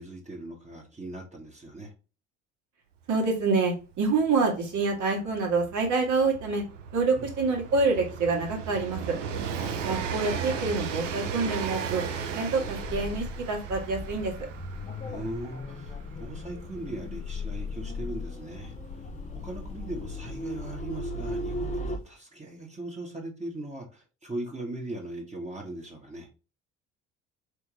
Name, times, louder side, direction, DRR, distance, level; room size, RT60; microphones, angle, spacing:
voice 1, 0.0-1.9 7.2-7.3 9.6-9.9 15.1-18.7 19.3-26.3, right 1 dB, 20° right, 1.6 m, -39 dB
voice 2, 3.1-6.6 6.9-9.2 9.9-14.3, right 3 dB, 50° right, 1.9 m, -27 dB
Train, 3.2-3.3 3.4-20.1 21.0-21.1, right 6 dB, 90° right, 0.6 m, -36 dB
sound 1, 12.6-22.0, left 2 dB, 20° left, 0.8 m, -37 dB
4.3 x 3.5 x 3.1 m
hypercardioid pair, 60°, 37 cm